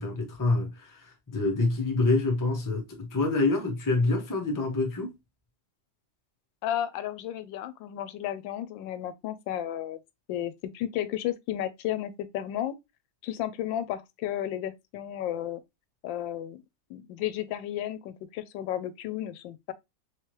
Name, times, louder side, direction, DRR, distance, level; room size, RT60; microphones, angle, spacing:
voice 1, 0.0-5.1, left 3 dB, 20° left, 0.6 m, -27 dB
voice 2, 6.6-10.0 10.3-12.8 13.2-15.6 16.0-16.6 16.9-19.7, left 11 dB, 85° left, 1.3 m, -33 dB
3.4 x 3.2 x 3.0 m
omnidirectional pair, 2.0 m